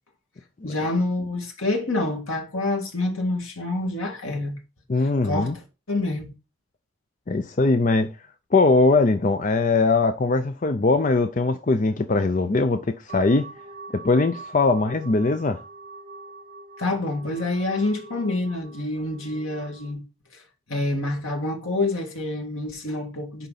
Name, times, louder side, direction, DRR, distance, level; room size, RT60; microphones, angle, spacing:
voice 1, 0.6-4.6 5.2-5.6 5.9-6.3 16.8-20.0 20.3-20.4 20.7-23.5, left 2 dB, 85° left, 2.0 m, -27 dB
voice 2, 4.9-5.6 7.3-8.1 8.5-13.5 14.0-15.6, left 3 dB, 40° left, 0.5 m, -21 dB
sound 1, 13.1-19.9, right 3 dB, 40° right, 2.6 m, -44 dB
10.0 x 4.0 x 4.1 m
head